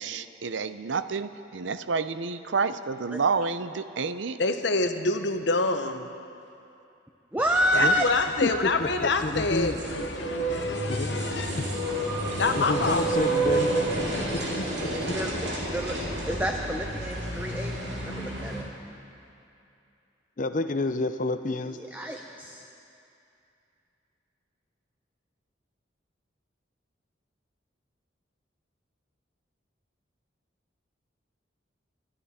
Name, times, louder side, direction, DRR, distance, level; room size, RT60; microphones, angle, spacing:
voice 1, 0.0-4.4, right 5 dB, 75° right, 12 dB, 0.6 m, -29 dB
voice 2, 4.4-6.1 7.7-11.7 12.4-13.2, left 3 dB, 65° left, 8 dB, 0.9 m, -27 dB
voice 3, 7.3-8.1 15.1-15.3 15.7-16.0 16.3-17.8 18.1-18.7 21.6-22.6, right 1 dB, 10° right, 2 dB, 0.6 m, -28 dB
sound 1, 7.4-18.6, right 2 dB, 60° right, 2.9 m, -30 dB
voice 4, 8.4-9.8 10.9-11.2 11.6-11.7 12.6-13.7 14.6-15.2 20.4-21.8, left 2 dB, 45° left, 10 dB, 0.6 m, -29 dB
26.5 x 12.5 x 4.3 m, 2.7 s
head